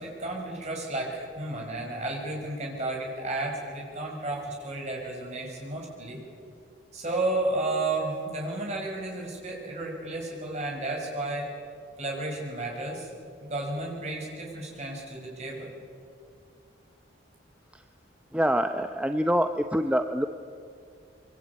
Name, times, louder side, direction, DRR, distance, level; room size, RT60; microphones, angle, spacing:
voice 1, 0.0-6.2 6.9-11.5 12.0-13.1 13.5-15.7, right 2 dB, 35° right, -1 dB, 6.4 m, -32 dB
voice 2, 18.3-20.2, equal, 5° right, 7 dB, 0.7 m, -25 dB
25.5 x 23.5 x 8.6 m, 2.3 s
head